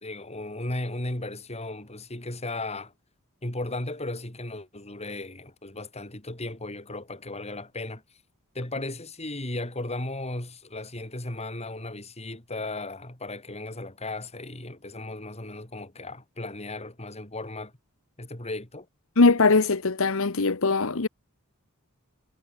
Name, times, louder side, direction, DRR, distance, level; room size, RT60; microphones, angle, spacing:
voice 1, 0.0-2.9 3.4-8.0 8.5-17.7 18.2-18.9, left 2 dB, 30° left, 4.1 m, -35 dB
voice 2, 19.2-21.1, left 3 dB, 70° left, 1.1 m, -21 dB
head